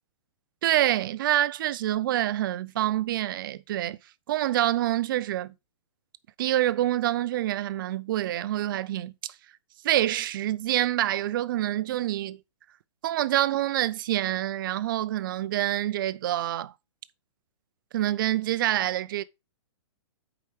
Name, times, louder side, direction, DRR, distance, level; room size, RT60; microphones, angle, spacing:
voice 1, 0.6-4.0 4.3-5.5 6.4-9.3 9.8-12.4 13.0-16.7 17.9-19.2, right 13 dB, 45° right, 0.5 m, -26 dB
7.5 x 4.9 x 4.8 m
hypercardioid pair, 155°, 16 cm